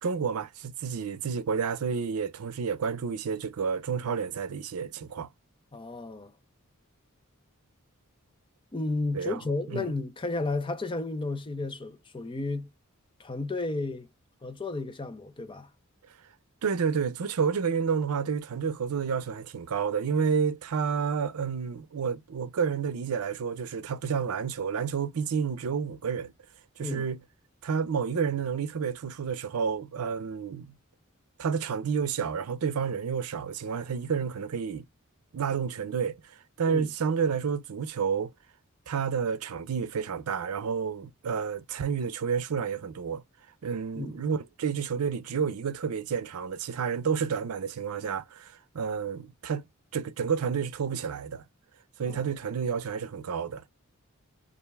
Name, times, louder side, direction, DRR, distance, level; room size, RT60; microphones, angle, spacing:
voice 1, 0.0-5.3 9.1-9.4 9.7-9.9 16.6-26.3 26.8-27.2 27.6-30.8 31.4-34.8 35.3-36.2 36.6-38.3 38.9-43.2 43.6-49.6 49.9-51.4 52.0-53.6, right 6 dB, 90° right, 0.5 m, -30 dB
voice 2, 5.7-6.3 8.7-12.7 13.2-14.1 14.4-15.7 26.8-27.1 36.7-36.9 43.9-44.3 52.1-52.3, left 3 dB, 25° left, 0.5 m, -33 dB
3.3 x 2.5 x 3.3 m
head